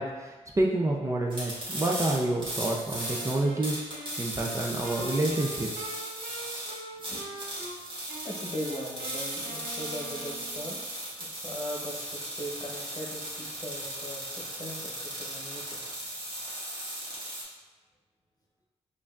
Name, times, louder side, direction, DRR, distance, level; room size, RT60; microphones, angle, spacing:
voice 1, 0.0-5.9, right 2 dB, 25° right, -2 dB, 0.5 m, -29 dB
sound 1, 1.3-17.4, right 1 dB, 45° right, 1.4 m, -37 dB
Wind instrument woodwind instrument, 3.0-7.8 8.1-10.7, right 1 dB, 80° right, 0.8 m, -43 dB
voice 2, 8.2-10.8 11.2-16.0, equal, 35° left, -2 dB, 0.9 m, -39 dB
4.9 x 2.5 x 2.4 m, 1.2 s
cardioid pair, 75°, 12 cm